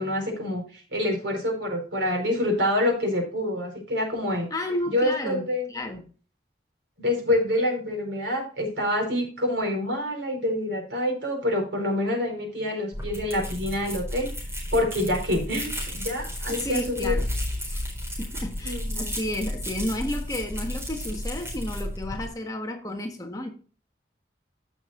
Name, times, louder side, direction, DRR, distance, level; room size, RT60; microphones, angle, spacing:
voice 1, 0.0-4.5 4.9-5.7 7.0-14.3 14.7-17.2 18.6-19.1, left 1 dB, 80° right, 4.5 m, -27 dB
voice 2, 4.5-6.0 16.5-17.3 17.7-17.9 18.2-23.5, left 1 dB, 20° left, 1.4 m, -32 dB
sound 1, 12.9-22.3, equal, 15° right, 4.2 m, -32 dB
15.0 x 6.3 x 2.6 m
head